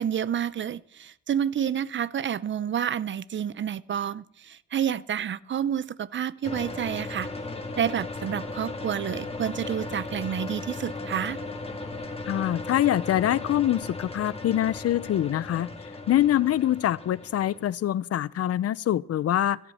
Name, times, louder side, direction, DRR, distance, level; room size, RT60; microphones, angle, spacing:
voice 1, 0.0-7.3 7.8-11.4, right 9 dB, 40° right, 0.6 m, -29 dB
sound 1, 6.4-17.7, left 2 dB, 20° left, 1.9 m, -37 dB
voice 2, 12.3-15.7 16.1-19.6, left 12 dB, 55° left, 0.6 m, -24 dB
17.0 x 13.0 x 4.3 m
cardioid pair, 90°, 30 cm